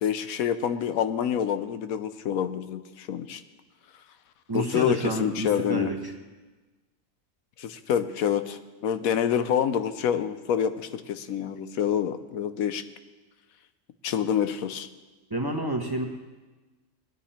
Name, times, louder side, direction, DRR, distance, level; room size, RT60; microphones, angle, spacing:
voice 1, 0.0-3.4 4.5-5.9 7.6-12.8 14.0-14.9, left 9 dB, 90° left, 11 dB, 1.2 m, -27 dB
voice 2, 4.5-6.1 15.3-16.0, right 1 dB, 15° right, 1 dB, 1.3 m, -29 dB
19.0 x 10.0 x 4.3 m, 1.2 s
omnidirectional pair, 1.4 m